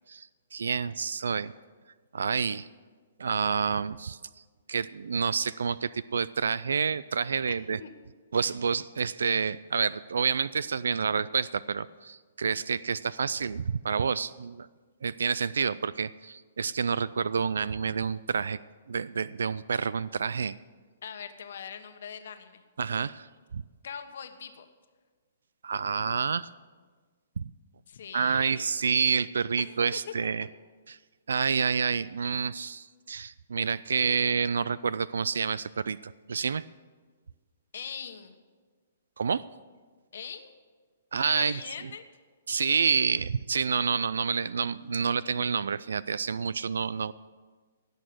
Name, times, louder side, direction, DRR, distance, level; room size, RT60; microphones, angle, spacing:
voice 1, 0.1-1.5 2.1-2.7 3.2-4.2 4.7-7.8 8.3-14.7 15.0-18.6 18.9-20.5 22.8-23.6 25.6-26.5 27.4-27.5 28.1-30.5 30.9-31.0 31.3-36.6 39.2-39.4 41.1-41.6 42.5-47.1, right 6 dB, 85° right, 19 dB, 0.3 m, -28 dB
voice 2, 21.0-22.6 23.8-24.7 27.9-28.6 29.7-29.8 30.2-30.5 37.7-38.4 40.1-40.5 41.3-42.0, left 7 dB, 65° left, 7 dB, 1.3 m, -41 dB
17.0 x 6.4 x 7.9 m, 1.5 s
hypercardioid pair, 155°, 0 cm